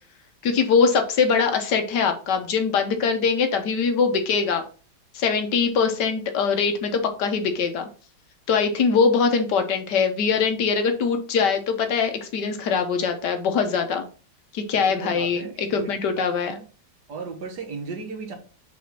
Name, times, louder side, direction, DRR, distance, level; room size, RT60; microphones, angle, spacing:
voice 1, 0.4-4.6 5.1-7.9 8.5-14.1 14.5-16.6, left 5 dB, 75° left, 6 dB, 1.6 m, -22 dB
voice 2, 14.9-16.6 17.1-18.3, right 4 dB, 65° right, 4 dB, 1.9 m, -36 dB
4.9 x 3.9 x 5.4 m, 0.37 s
omnidirectional pair, 1.9 m